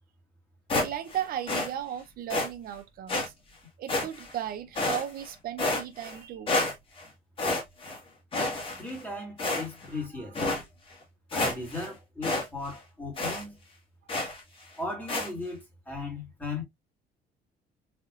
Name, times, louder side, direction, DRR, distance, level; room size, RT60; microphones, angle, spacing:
sound 1, 0.7-1.2 1.5-1.7 2.3-2.5 3.1-3.3 3.9-4.4 4.8-5.3 5.6-6.2 6.5-7.0 7.4-8.0 8.3-9.0 9.4-9.9 10.4-10.6 11.0-11.1 11.3-11.9 12.2-12.5 12.7-12.8 13.2-13.4 14.1-14.4 15.1-15.3, left 2 dB, 30° left, 1.7 m, -29 dB
voice 1, 0.7-3.3 3.8-6.5 9.9-10.3 14.1-14.2, right 10 dB, 60° right, 0.6 m, -36 dB
voice 2, 8.8-10.4 11.3-13.6 14.8-16.6, left 2 dB, 10° left, 2.5 m, -37 dB
3.7 x 3.5 x 2.4 m
cardioid pair, 110°, 17 cm